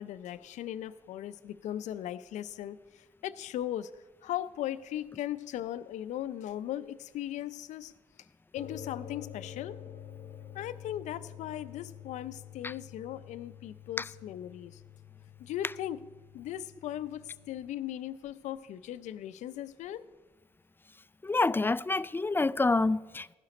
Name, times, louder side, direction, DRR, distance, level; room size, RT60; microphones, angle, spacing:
voice 1, 0.0-3.9 4.2-7.9 8.5-9.8 10.5-14.8 15.4-16.0 16.3-20.0, left 12 dB, 80° left, 0.5 m, -38 dB
sound 1, 8.6-17.7, left 9 dB, 55° left, 0.8 m, -48 dB
voice 2, 21.2-23.4, left 3 dB, 20° left, 0.3 m, -27 dB
15.5 x 11.5 x 4.2 m
supercardioid pair, 55°, 12 cm